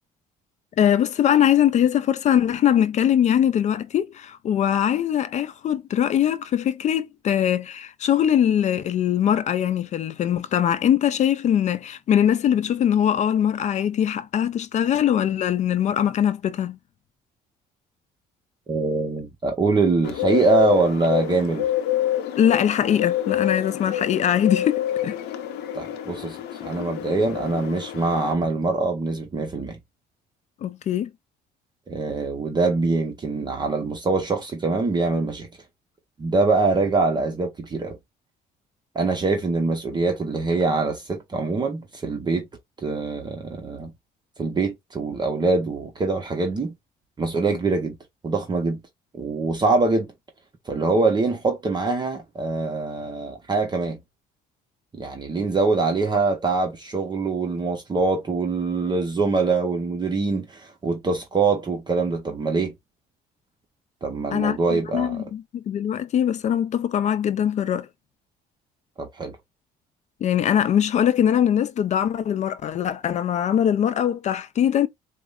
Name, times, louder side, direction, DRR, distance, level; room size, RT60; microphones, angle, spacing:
voice 1, 0.8-16.8 22.4-25.2 30.6-31.1 64.3-67.9 70.2-74.9, left 9 dB, 45° left, 0.4 m, -22 dB
voice 2, 18.7-21.7 25.7-29.8 31.9-35.5 36.2-38.0 38.9-42.5 42.8-43.9 44.4-46.7 47.2-48.0 48.2-48.8 49.2-50.1 50.7-54.0 54.9-62.7 64.0-65.2 69.0-69.4, right 3 dB, 25° right, 0.8 m, -24 dB
Bird, 20.0-28.3, left 12 dB, 85° left, 0.7 m, -27 dB
4.7 x 2.1 x 2.3 m
cardioid pair, 110°, 17 cm